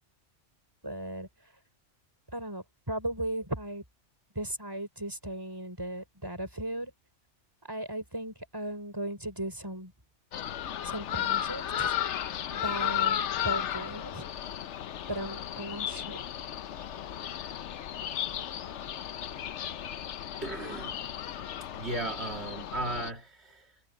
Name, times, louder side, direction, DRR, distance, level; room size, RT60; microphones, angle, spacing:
voice 1, 0.8-1.3 2.3-3.8 4.3-6.9 7.6-9.9 10.8-11.9 12.5-14.3 15.1-16.2, right 1 dB, 20° right, 5.1 m, -37 dB
sound 1, 10.3-23.1, left 10 dB, 75° left, 1.0 m, -34 dB
voice 2, 20.4-21.1 21.7-23.8, right 2 dB, 65° right, 2.4 m, -36 dB
omnidirectional pair, 1.2 m